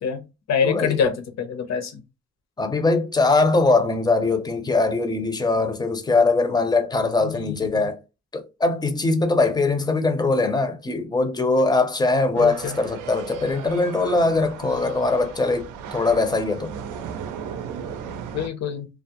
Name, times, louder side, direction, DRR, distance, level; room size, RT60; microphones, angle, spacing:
voice 1, 0.0-2.0 7.2-7.9 12.4-12.8 18.3-18.9, left 6 dB, 60° left, 0.8 m, -26 dB
voice 2, 0.6-1.0 2.6-8.0 8.3-16.7, left 3 dB, 15° left, 0.5 m, -21 dB
sound 1, 12.4-18.5, right 7 dB, 85° right, 0.5 m, -36 dB
2.3 x 2.1 x 2.9 m
cardioid pair, 90°, 30 cm